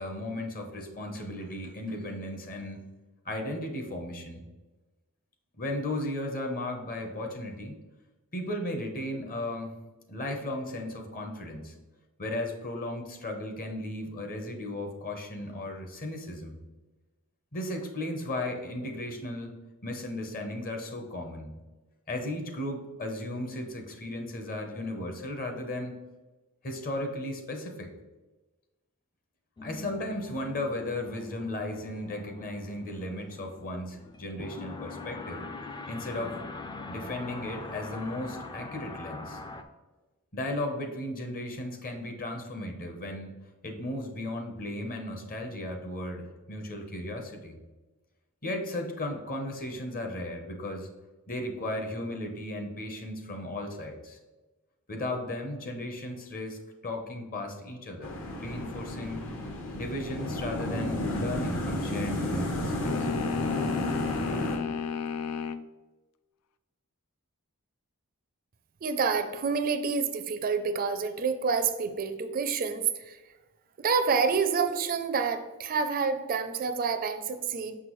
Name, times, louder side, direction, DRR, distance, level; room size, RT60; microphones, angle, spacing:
voice 1, 0.0-2.8 3.2-4.4 5.6-7.8 8.3-9.7 10.1-11.7 12.2-16.6 17.5-19.5 19.8-21.5 22.1-25.9 26.6-27.9 29.6-35.4 35.9-36.4 36.9-39.4 40.3-43.4 43.6-47.6 48.4-50.9 51.3-54.2 54.9-59.2 59.7-63.1, left 1 dB, 40° left, 4 dB, 0.9 m, -35 dB
sound 1, 29.6-39.6, left 3 dB, 20° left, 0.4 m, -42 dB
sound 2, 58.0-64.6, left 1 dB, 65° left, 1.2 m, -32 dB
sound 3, 62.8-65.7, left 6 dB, 90° left, 0.4 m, -33 dB
voice 2, 68.8-73.2 73.8-77.8, right 5 dB, 40° right, 9 dB, 0.4 m, -28 dB
6.0 x 5.8 x 3.1 m, 1.2 s
head